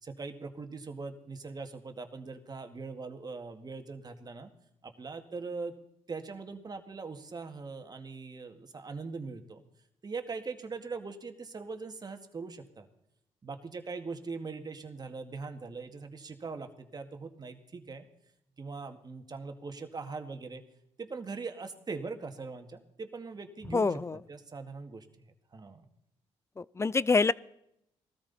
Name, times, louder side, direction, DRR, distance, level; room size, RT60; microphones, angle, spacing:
voice 1, 0.0-4.5 4.8-5.7 6.1-9.6 10.0-12.9 13.4-18.1 18.6-20.6 21.0-25.9, right 4 dB, 35° right, 6 dB, 2.0 m, -41 dB
voice 2, 23.7-24.2 26.6-27.3, left 4 dB, 25° left, 20 dB, 0.5 m, -26 dB
19.0 x 14.0 x 4.2 m, 0.77 s
cardioid pair, 80°, 12 cm